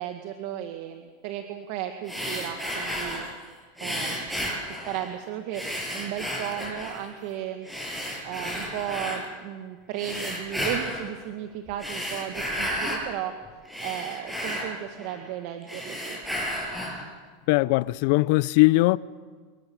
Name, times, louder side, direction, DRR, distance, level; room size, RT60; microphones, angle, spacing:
voice 1, 0.0-3.3 3.8-4.4 4.6-5.6 5.9-7.7 8.2-13.3 13.8-16.2, right 11 dB, 60° right, 2.0 m, -35 dB
sound 1, 2.0-3.4 3.8-5.2 5.5-7.1 7.6-9.2 9.9-11.1 11.7-13.1 13.5-15.3 15.6-17.1, equal, ahead, 7.5 m, -32 dB
voice 2, 17.5-19.0, left 21 dB, 65° left, 0.6 m, -20 dB
26.5 x 22.0 x 7.4 m
supercardioid pair, 120°, 0 cm